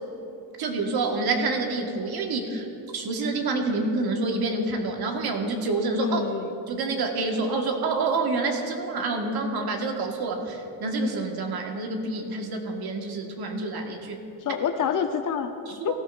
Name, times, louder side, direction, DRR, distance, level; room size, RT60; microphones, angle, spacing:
voice 1, 0.6-2.7 2.9-6.2 6.7-14.2 15.9-16.0, right 3 dB, 55° right, 2 dB, 1.7 m, -27 dB
voice 2, 6.0-6.6 14.4-15.9, left 7 dB, 45° left, 7 dB, 0.9 m, -28 dB
18.0 x 13.0 x 2.6 m, 2.7 s
supercardioid pair, 80°, 45 cm